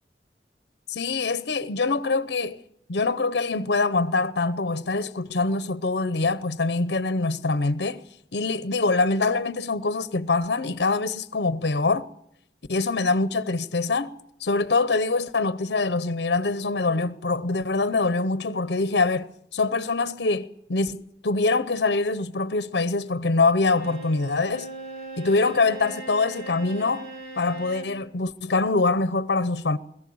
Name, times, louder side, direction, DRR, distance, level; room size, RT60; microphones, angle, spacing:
voice 1, 0.9-2.6 2.9-8.0 8.3-12.1 12.7-14.1 14.4-24.7 25.2-27.1 27.4-29.8, left 3 dB, 75° left, 0.8 m, -24 dB
Bowed string instrument, 23.7-28.0, right 2 dB, 65° right, 3.3 m, -39 dB
21.5 x 14.5 x 8.6 m
head